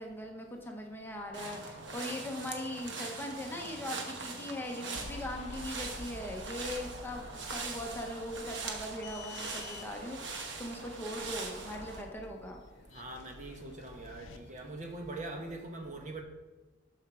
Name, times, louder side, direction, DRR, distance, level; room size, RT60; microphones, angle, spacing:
voice 1, 0.0-12.6, left 1 dB, 10° left, 1 dB, 0.9 m, -40 dB
sound 1, 1.3-12.0, right 3 dB, 60° right, 1.1 m, -42 dB
sound 2, 4.9-14.4, left 1 dB, 75° left, 0.6 m, -51 dB
sound 3, 8.8-15.6, left 5 dB, 60° left, 0.9 m, -53 dB
voice 2, 12.9-16.2, right 2 dB, 40° right, 3 dB, 1.0 m, -42 dB
7.8 x 5.0 x 6.1 m, 1.2 s
head